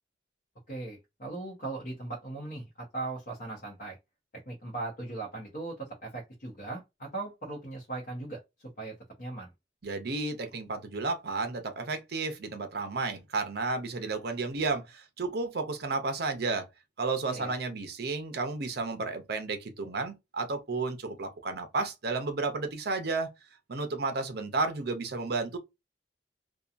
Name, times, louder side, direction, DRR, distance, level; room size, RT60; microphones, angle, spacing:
voice 1, 0.7-4.0 4.5-8.4 8.8-9.5 17.3-17.5, right 3 dB, 45° left, 0.8 m, -38 dB
voice 2, 9.8-16.7 17.0-23.3 23.7-25.6, right 3 dB, 60° right, 0.6 m, -32 dB
2.8 x 2.2 x 2.4 m
head